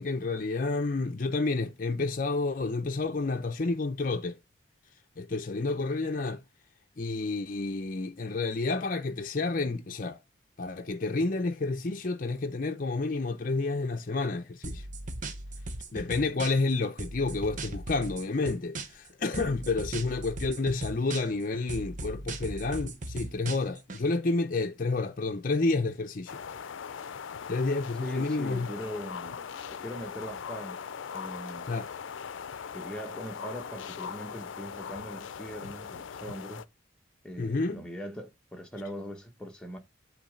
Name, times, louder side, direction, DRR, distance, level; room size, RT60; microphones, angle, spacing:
voice 1, 0.0-4.4 5.2-6.4 7.0-10.2 10.6-14.8 15.9-26.4 27.5-28.7 31.7-31.9 37.4-37.8, left 3 dB, 45° left, 0.6 m, -30 dB
sound 1, 14.6-16.7 17.0-19.1 19.3-21.4 21.7-24.0, right 2 dB, 40° right, 0.8 m, -38 dB
sound 2, 26.3-36.6, left 7 dB, 85° left, 0.5 m, -40 dB
voice 2, 28.0-30.8 31.1-31.7 32.7-36.6 37.2-39.8, equal, 5° left, 1.2 m, -41 dB
8.5 x 3.2 x 5.1 m
head